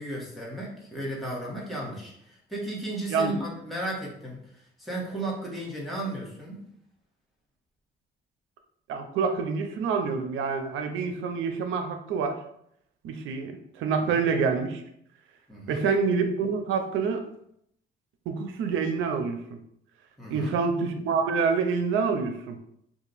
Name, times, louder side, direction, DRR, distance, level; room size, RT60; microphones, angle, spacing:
voice 1, 0.0-6.6 14.0-14.2 15.5-15.8 20.2-20.5, right 1 dB, ahead, -5 dB, 1.3 m, -35 dB
voice 2, 8.9-12.4 13.0-14.8 15.7-17.2 18.3-19.6 20.3-22.6, right 5 dB, 90° right, 7 dB, 0.5 m, -27 dB
2.8 x 2.4 x 4.0 m, 0.72 s
cardioid pair, 90°, 20 cm